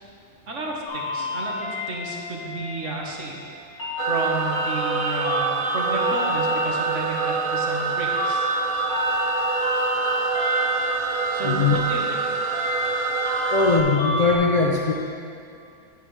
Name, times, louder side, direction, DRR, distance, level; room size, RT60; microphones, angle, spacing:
voice 1, 0.5-3.4 3.7-8.5 11.3-12.2, right 2 dB, 60° right, -2 dB, 1.5 m, -31 dB
sound 1, 0.9-14.4, left 2 dB, 80° left, 2.0 m, -30 dB
sound 2, 4.0-13.8, right 5 dB, 90° right, 1.1 m, -26 dB
voice 2, 11.4-11.8 13.5-14.9, left 4 dB, 50° left, -1 dB, 0.5 m, -20 dB
9.7 x 9.2 x 3.2 m, 2.5 s
omnidirectional pair, 1.5 m